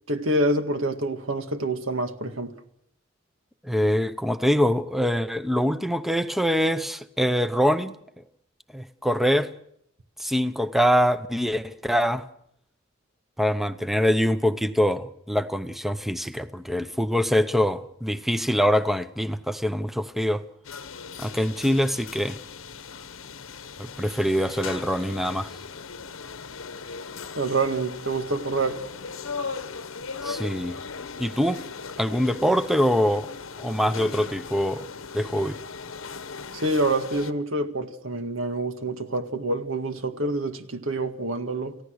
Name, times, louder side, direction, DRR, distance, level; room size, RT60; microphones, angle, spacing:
voice 1, 0.1-2.5 27.4-28.8 36.5-41.8, right 2 dB, 80° right, 7 dB, 1.9 m, -27 dB
voice 2, 3.6-7.9 8.7-9.5 10.2-12.2 13.4-20.4 21.2-22.4 23.8-25.5 30.2-30.8 31.2-31.6 32.0-33.3 33.6-34.9 35.1-35.6, equal, ahead, 11 dB, 0.8 m, -24 dB
sound 1, 20.6-37.3, left 5 dB, 85° left, 1.1 m, -38 dB
29.0 x 15.5 x 6.4 m, 0.74 s
head